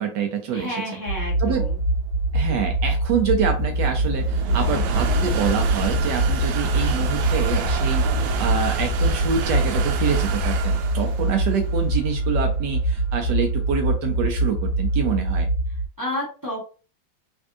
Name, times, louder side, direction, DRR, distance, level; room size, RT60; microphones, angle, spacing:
voice 1, 0.0-0.8 1.4-1.7 2.3-15.5, right 6 dB, 75° right, 4 dB, 1.0 m, -26 dB
voice 2, 0.5-1.8 16.0-16.7, left 1 dB, 15° right, -5 dB, 0.7 m, -30 dB
sound 1, 1.1-15.8, right 2 dB, 75° left, 1.3 m, -24 dB
sound 2, 1.7-14.8, right 1 dB, 90° right, 1.4 m, -29 dB
3.3 x 2.6 x 2.3 m, 0.36 s
omnidirectional pair, 2.2 m